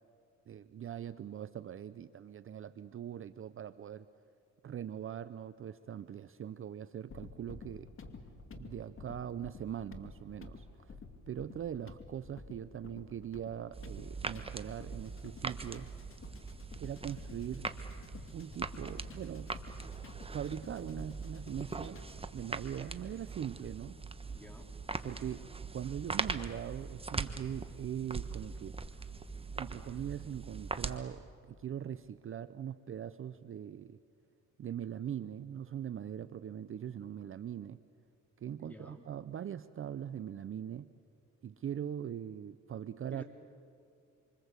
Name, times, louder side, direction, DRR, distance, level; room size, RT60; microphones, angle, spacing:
voice 1, 0.5-4.1 4.6-7.9 8.6-11.0 11.3-15.9 16.8-17.7 18.3-19.6 20.3-24.0 25.0-25.4 25.7-28.8 29.6-34.0 34.6-37.8 38.4-40.9 41.4-43.2, right 9 dB, 45° right, 14 dB, 0.7 m, -41 dB
sound 1, 7.1-22.3, left 3 dB, 45° left, 2.4 m, -51 dB
sound 2, 13.7-31.0, right 4 dB, 20° right, 1.3 m, -41 dB
voice 2, 24.3-24.7 38.6-39.0 43.1-43.2, left 1 dB, 5° left, 2 dB, 4.3 m, -52 dB
27.0 x 25.5 x 8.2 m, 2.5 s
cardioid pair, 90°, 30 cm